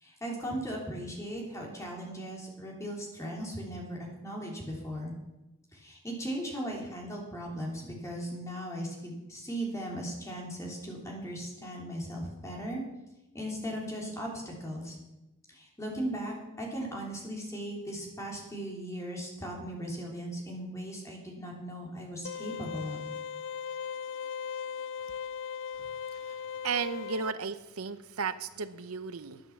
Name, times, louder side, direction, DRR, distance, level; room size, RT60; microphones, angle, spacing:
voice 1, 0.0-5.1 5.7-12.8 13.3-15.0 15.5-23.0, equal, 15° left, -2 dB, 3.3 m, -38 dB
sound 1, 22.2-27.3, left 7 dB, 60° left, 0.3 m, -38 dB
voice 2, 26.6-29.4, right 5 dB, 85° right, 12 dB, 0.7 m, -34 dB
11.0 x 9.6 x 7.2 m, 0.99 s
head